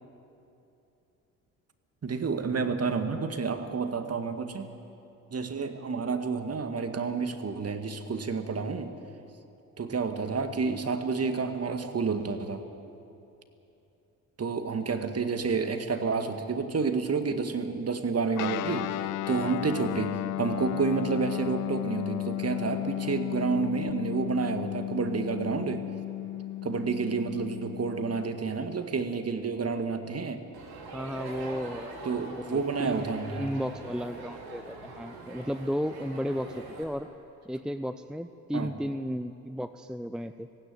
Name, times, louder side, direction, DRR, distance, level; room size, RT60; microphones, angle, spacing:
voice 1, 2.0-4.7 5.3-8.9 9.8-12.6 14.4-25.9 26.6-30.4 32.0-33.5 38.5-38.7, right 5 dB, 35° right, 8 dB, 2.1 m, -30 dB
Guitar, 18.3-28.3, left 15 dB, 50° left, 0.5 m, -34 dB
Crowd, 30.5-36.8, right 2 dB, 60° right, 3.9 m, -43 dB
voice 2, 30.9-31.9 32.3-33.0 33.3-37.1 37.5-40.5, equal, ahead, 11 dB, 0.6 m, -34 dB
17.0 x 16.5 x 9.9 m, 2.9 s
hypercardioid pair, 50°, 41 cm